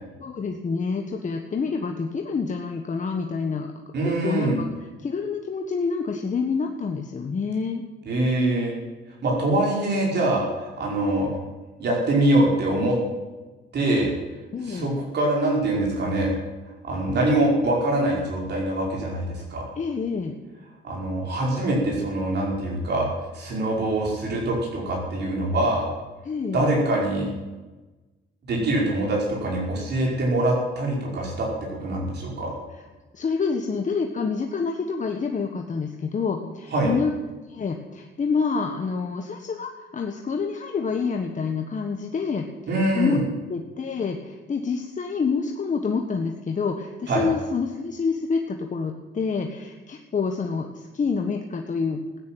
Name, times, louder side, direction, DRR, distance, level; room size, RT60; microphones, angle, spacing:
voice 1, 0.2-3.7 4.2-4.6 5.0-7.8 14.5-15.0 19.8-20.4 26.2-26.7 33.1-37.1 37.4-43.2 43.5-52.2, left 5 dB, 40° left, 3 dB, 1.4 m, -27 dB
voice 2, 3.9-4.6 8.1-8.8 9.2-11.3 11.8-13.0 13.7-14.1 14.7-16.3 16.8-19.6 20.8-23.1 23.3-25.9 26.5-27.3 28.5-32.5 36.7-36.9 42.7-43.2 47.1-47.2, right 1 dB, 60° right, -2 dB, 5.4 m, -24 dB
15.5 x 9.8 x 9.2 m, 1.2 s
cardioid pair, 90°, 20 cm